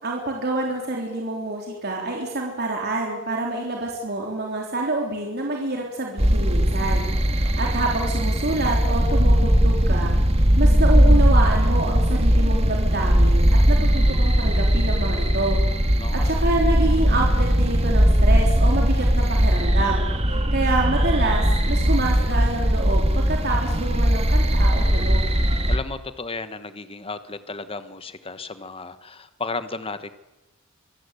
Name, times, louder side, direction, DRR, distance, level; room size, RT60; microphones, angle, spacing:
voice 1, 0.0-10.2 10.6-15.6 15.9-25.3, right 2 dB, 55° right, -1 dB, 3.6 m, -27 dB
sound 1, 6.2-25.8, equal, 30° right, 1.9 m, -19 dB
voice 2, 7.4-7.8 16.0-16.3 25.7-30.1, left 3 dB, 30° left, 12 dB, 1.2 m, -34 dB
25.5 x 15.0 x 8.4 m, 1.0 s
head